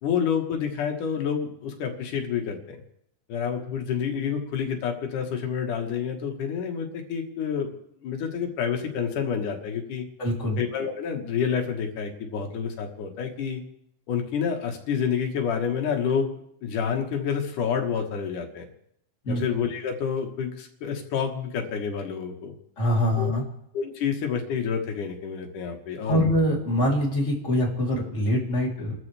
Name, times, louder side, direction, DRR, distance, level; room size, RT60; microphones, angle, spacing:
voice 1, 0.0-2.8 3.3-7.7 8.0-10.0 10.6-13.6 14.1-16.3 16.6-18.6 19.3-22.5 23.2-23.3 23.7-26.2, left 7 dB, 75° left, 3 dB, 3.0 m, -28 dB
voice 2, 10.2-10.6 19.2-19.4 22.8-23.4 26.0-28.9, equal, 20° left, -3 dB, 3.4 m, -24 dB
30.0 x 13.5 x 3.4 m, 0.73 s
omnidirectional pair, 3.7 m